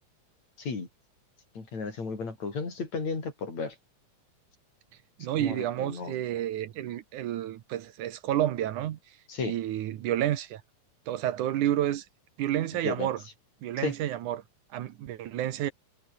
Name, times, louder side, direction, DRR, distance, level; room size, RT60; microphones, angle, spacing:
voice 1, 1.5-3.7 5.4-6.2 9.3-9.6 12.8-13.1 13.8-13.9, left 4 dB, 60° left, 6.5 m, -34 dB
voice 2, 5.2-9.0 9.4-10.6 11.1-12.1 12.4-13.2 13.6-14.4 14.7-15.7, right 12 dB, 75° right, 2.6 m, -30 dB
omnidirectional pair, 3.6 m